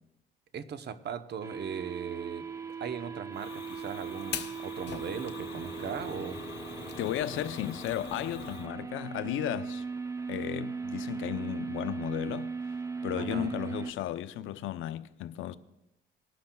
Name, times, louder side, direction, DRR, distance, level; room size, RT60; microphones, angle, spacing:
voice 1, 0.5-2.5 2.8-6.4 13.1-13.5, right 7 dB, 55° right, 0.8 m, -38 dB
sound 1, 1.4-13.9, right 5 dB, 15° right, 0.5 m, -38 dB
Fire, 3.3-8.7, left 8 dB, 60° left, 1.0 m, -43 dB
voice 2, 7.0-9.8 10.3-12.5 13.0-15.5, left 12 dB, 80° left, 0.6 m, -34 dB
19.5 x 11.5 x 2.3 m
cardioid pair, 90°, 20 cm